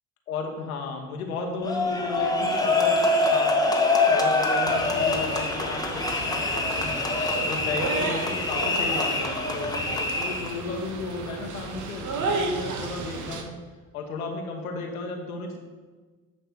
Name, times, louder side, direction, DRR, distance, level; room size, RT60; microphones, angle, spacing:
voice 1, 0.3-3.5 4.1-7.0 7.4-13.6 13.9-15.6, left 3 dB, 80° left, 2 dB, 1.1 m, -34 dB
sound 1, 1.6-10.6, left 2 dB, 10° left, 1.2 m, -25 dB
sound 2, 4.7-13.4, right 4 dB, 45° right, 1.2 m, -33 dB
9.5 x 3.3 x 6.0 m, 1.4 s
figure-of-eight pair, 60°, 43 cm